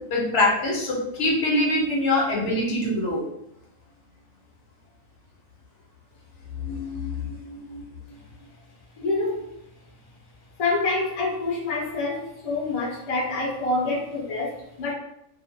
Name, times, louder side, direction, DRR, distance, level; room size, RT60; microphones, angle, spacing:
voice 1, 0.1-3.2 6.5-7.8, left 2 dB, 65° left, -2 dB, 1.0 m, -24 dB
voice 2, 9.0-9.5 10.6-14.9, left 3 dB, 45° left, -3 dB, 0.4 m, -27 dB
2.5 x 2.1 x 2.6 m, 0.79 s
omnidirectional pair, 1.4 m